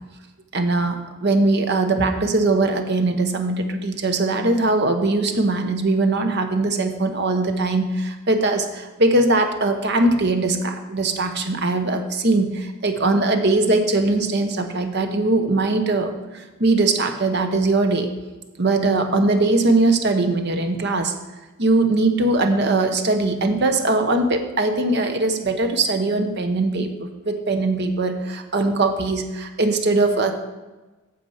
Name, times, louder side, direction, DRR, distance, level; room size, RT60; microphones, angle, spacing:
voice 1, 0.5-18.1 18.6-21.1 21.6-30.3, right 2 dB, 50° right, 6 dB, 1.0 m, -21 dB
8.6 x 6.9 x 5.6 m, 1.1 s
head